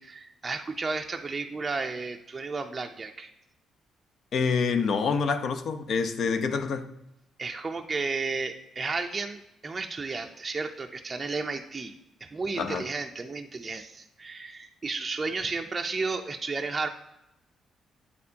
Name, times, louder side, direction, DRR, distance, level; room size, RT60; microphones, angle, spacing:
voice 1, 0.0-3.3 7.4-12.0 12.2-16.9, right 4 dB, 30° right, 4 dB, 0.4 m, -33 dB
voice 2, 4.3-6.8 12.6-12.8, left 5 dB, 60° left, 9 dB, 0.6 m, -26 dB
8.3 x 4.3 x 2.7 m, 0.89 s
cardioid pair, 90°, 0 cm